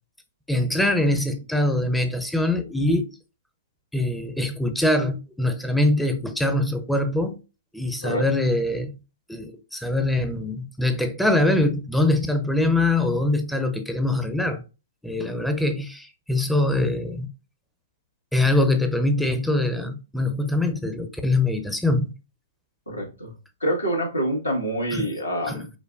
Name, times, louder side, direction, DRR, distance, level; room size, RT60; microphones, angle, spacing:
voice 1, 0.5-3.1 3.9-7.4 7.7-8.9 9.3-14.6 15.0-17.3 18.3-22.1 24.9-25.1 25.5-25.6, left 2 dB, ahead, 0.5 m, -23 dB
voice 2, 22.9-23.3 23.6-25.7, right 1 dB, 85° left, 1.5 m, -26 dB
5.0 x 2.1 x 2.4 m
figure-of-eight pair, 115°, 0 cm